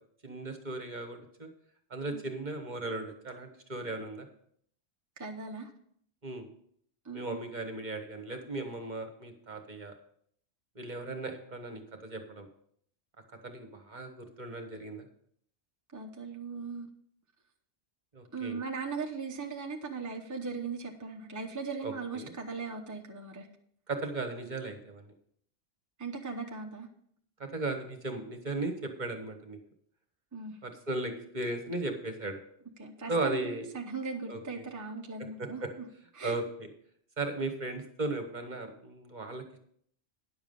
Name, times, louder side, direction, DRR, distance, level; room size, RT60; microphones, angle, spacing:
voice 1, 0.2-1.5 1.9-4.3 6.2-6.5 7.1-9.9 10.7-12.5 13.4-15.0 18.1-18.6 21.8-22.3 23.9-25.0 27.4-29.6 30.6-32.4 33.1-33.7 34.3-34.6 35.4-35.7 36.2-36.7 37.2-39.4, right 2 dB, 45° right, 5 dB, 1.4 m, -36 dB
voice 2, 5.2-5.7 7.0-7.4 15.9-16.9 18.3-23.5 26.0-26.9 30.3-30.6 32.8-35.6 36.1-36.4, right 4 dB, 20° right, 2 dB, 0.8 m, -38 dB
10.0 x 7.1 x 5.4 m, 0.64 s
omnidirectional pair, 1.1 m